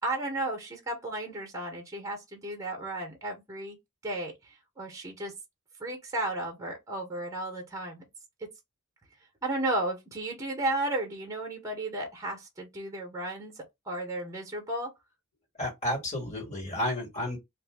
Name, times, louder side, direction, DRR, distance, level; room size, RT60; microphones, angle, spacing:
voice 1, 0.0-3.8 4.0-5.3 5.8-8.0 8.4-8.5 9.4-14.9, right 1 dB, 15° right, 1.1 m, -34 dB
voice 2, 15.6-17.4, left 1 dB, 35° left, 1.8 m, -31 dB
2.6 x 2.6 x 3.6 m
head